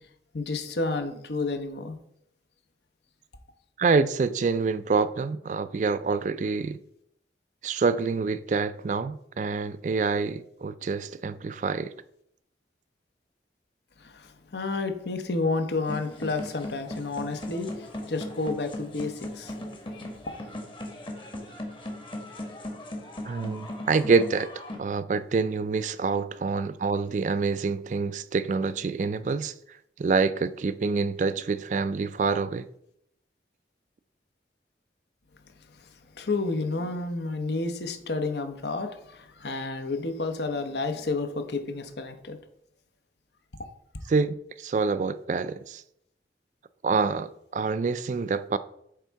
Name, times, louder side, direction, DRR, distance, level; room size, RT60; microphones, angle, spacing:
voice 1, 0.3-2.0 14.0-19.5 36.2-42.4, left 3 dB, 75° left, 0.8 m, -30 dB
voice 2, 3.8-6.8 7.6-11.9 23.2-24.5 24.8-29.5 30.0-32.6 44.1-45.8 46.8-48.6, right 4 dB, 45° right, 0.3 m, -26 dB
sound 1, 15.9-24.8, left 1 dB, 30° left, 1.0 m, -38 dB
8.2 x 3.5 x 4.6 m
head